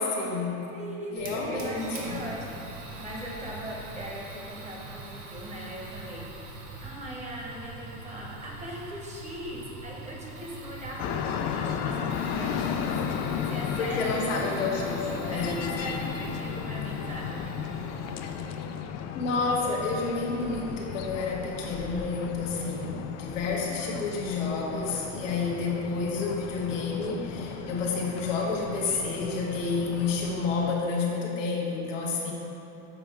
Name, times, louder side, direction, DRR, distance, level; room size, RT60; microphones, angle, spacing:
voice 1, 0.0-0.6 1.1-2.2 13.8-15.5 19.1-32.3, left 4 dB, 90° left, -3 dB, 1.1 m, -30 dB
voice 2, 0.7-17.7 18.7-19.0, equal, 20° right, -3 dB, 1.2 m, -40 dB
Fire, 1.2-18.8, right 3 dB, 80° right, 1.1 m, -43 dB
sound 1, 11.0-30.7, left 8 dB, 45° left, 0.4 m, -35 dB
7.0 x 4.3 x 3.5 m, 3.0 s
hypercardioid pair, 95°, 36 cm